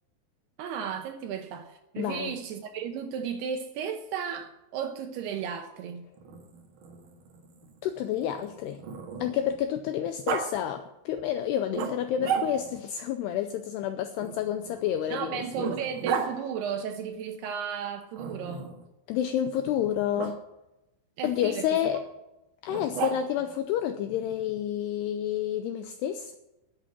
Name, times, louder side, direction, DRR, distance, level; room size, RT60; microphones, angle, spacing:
voice 1, 0.6-6.1 15.1-18.7 21.2-21.7, right 7 dB, 75° right, 6 dB, 2.5 m, -34 dB
voice 2, 2.0-2.4 7.8-8.8 9.2-15.7 19.1-20.4 21.2-22.0 22.6-26.4, left 10 dB, 90° left, 8 dB, 2.3 m, -29 dB
Growling, 6.2-9.6 10.3-10.5 11.7-12.8 14.2-16.3 18.2-18.8 20.2-20.3 22.7-23.5, right 6 dB, 60° right, 2.4 m, -34 dB
11.0 x 8.4 x 7.3 m, 0.95 s
omnidirectional pair, 5.4 m